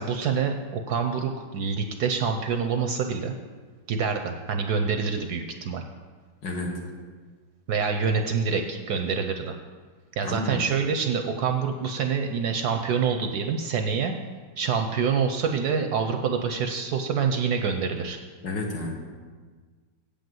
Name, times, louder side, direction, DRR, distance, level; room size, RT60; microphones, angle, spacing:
voice 1, 0.0-3.3 3.9-5.8 7.7-9.6 10.2-14.2 14.6-18.2, right 6 dB, 70° right, 5 dB, 1.0 m, -26 dB
voice 2, 6.4-6.9 10.2-10.6 18.4-18.9, left 2 dB, 70° left, 1 dB, 1.9 m, -31 dB
8.2 x 5.2 x 7.7 m, 1.5 s
omnidirectional pair, 2.1 m